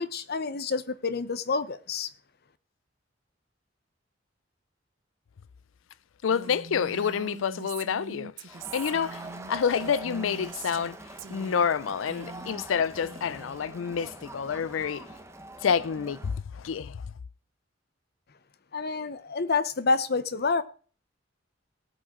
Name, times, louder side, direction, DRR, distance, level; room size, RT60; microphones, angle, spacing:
voice 1, 0.0-2.1 18.7-20.6, left 4 dB, 55° left, 0.8 m, -28 dB
voice 2, 6.2-11.0 11.3-15.1 15.6-17.1, left 7 dB, 85° left, 0.4 m, -28 dB
Female speech woman speaking, 6.3-10.9 11.2-11.7 12.0-12.7 12.9-13.6, right 4 dB, 80° right, 0.9 m, -43 dB
Crowd, 8.5-16.4, right 2 dB, 15° right, 1.0 m, -44 dB
18.0 x 8.5 x 3.7 m
head